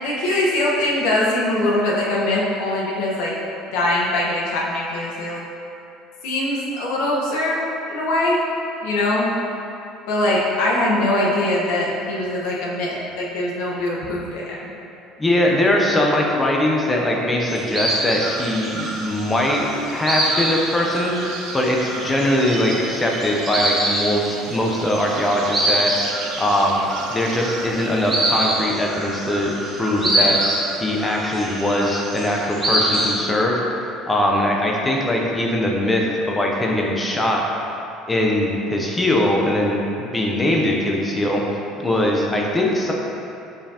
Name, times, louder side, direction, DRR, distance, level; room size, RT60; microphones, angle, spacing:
voice 1, 0.0-3.3 3.7-5.4 6.2-8.4 8.8-9.3 10.1-14.6 29.9-30.3, left 1 dB, 90° left, -5 dB, 1.2 m, -22 dB
voice 2, 15.2-25.9 26.4-26.8 27.1-30.4 30.8-33.6 34.1-37.4 38.1-41.4 41.8-42.9, left 1 dB, 10° left, -1 dB, 0.7 m, -21 dB
sound 1, 17.5-33.1, right 1 dB, 10° right, 1.4 m, -25 dB
sound 2, 18.2-28.5, right 4 dB, 80° right, 0.7 m, -37 dB
7.0 x 5.3 x 2.9 m, 2.8 s
cardioid pair, 165°, 0 cm